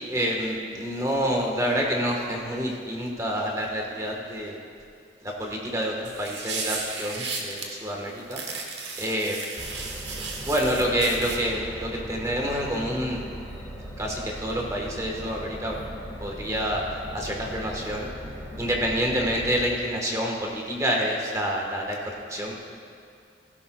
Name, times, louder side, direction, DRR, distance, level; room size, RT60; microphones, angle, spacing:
voice 1, 0.0-4.6 5.2-8.4 9.0-9.4 10.0-13.2 14.0-15.7 16.2-16.8 17.1-18.1 18.6-22.5, equal, 15° right, -1 dB, 1.3 m, -28 dB
sound 1, 6.1-7.7 8.3-11.4, right 4 dB, 65° right, 1.4 m, -34 dB
sound 2, 9.6-19.6, equal, 5° left, 2.0 m, -39 dB
16.5 x 11.0 x 2.3 m, 2.3 s
head